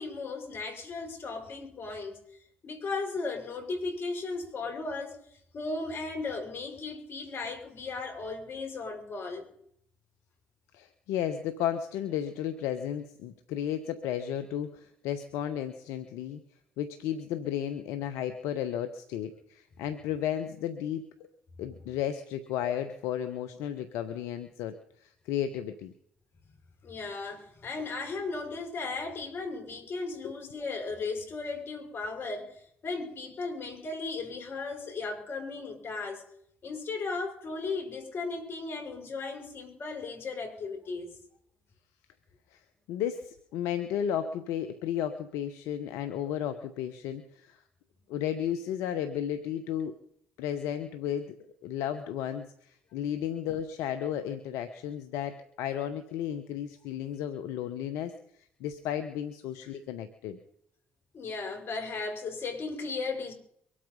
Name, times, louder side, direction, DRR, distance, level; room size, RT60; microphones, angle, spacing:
voice 1, 0.0-2.2 2.6-5.2 5.5-9.5 26.5-26.6 26.8-36.2 36.6-41.2 53.0-53.1 61.1-63.3, left 3 dB, 55° left, 4 dB, 5.9 m, -36 dB
voice 2, 10.7-16.4 16.8-21.0 21.6-24.7 25.0-25.9 30.2-30.3 42.5-42.6 42.9-47.6 48.1-49.9 50.4-51.3 51.6-58.1 58.6-60.4, left 10 dB, 80° left, 9 dB, 1.0 m, -33 dB
24.0 x 8.6 x 5.4 m, 0.69 s
hypercardioid pair, 55°, 5 cm